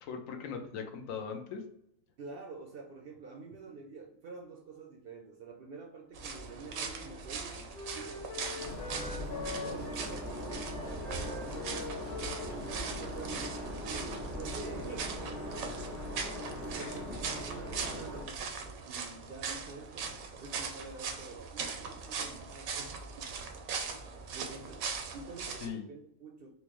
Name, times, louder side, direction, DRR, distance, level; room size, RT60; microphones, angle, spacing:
voice 1, 0.0-1.6 16.8-17.2 17.5-17.6 25.6-25.9, left 6 dB, 80° left, 5 dB, 1.0 m, -40 dB
voice 2, 2.2-7.6 7.9-12.0 12.5-15.7 16.2-20.1 20.4-23.3 24.3-24.9 25.1-26.5, right 4 dB, 65° right, 1 dB, 0.6 m, -48 dB
Wind instrument woodwind instrument, 6.1-10.1 10.5-14.9, left 5 dB, 55° left, 0.7 m, -45 dB
sound 1, 6.1-25.7, right 5 dB, 90° right, 1.1 m, -40 dB
sound 2, 8.6-18.2, equal, 40° left, 1.3 m, -41 dB
4.3 x 2.1 x 3.0 m, 0.76 s
omnidirectional pair, 1.4 m